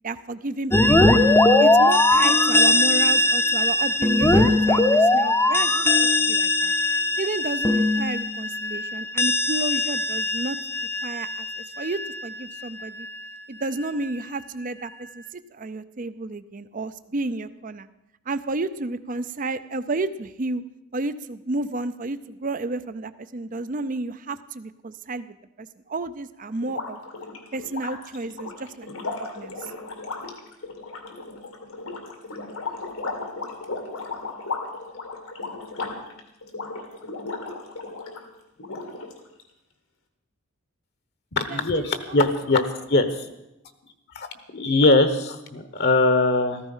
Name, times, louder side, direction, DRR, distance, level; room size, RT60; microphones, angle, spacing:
voice 1, 0.0-0.7 1.0-1.2 1.6-6.7 7.2-10.6 11.0-13.1 13.5-17.9 18.3-20.6 20.9-27.0 27.5-29.7 41.5-42.3, right 2 dB, 40° right, 13 dB, 0.5 m, -31 dB
sound 1, 0.7-12.3, left 2 dB, 10° left, 0.7 m, -20 dB
sound 2, 26.6-38.2 38.6-39.4, left 3 dB, 90° left, 2.3 m, -35 dB
voice 2, 41.3-42.6 42.9-43.3 44.1-44.3 44.5-46.6, left 2 dB, 50° left, 9 dB, 1.1 m, -21 dB
14.5 x 14.0 x 5.6 m, 0.90 s
head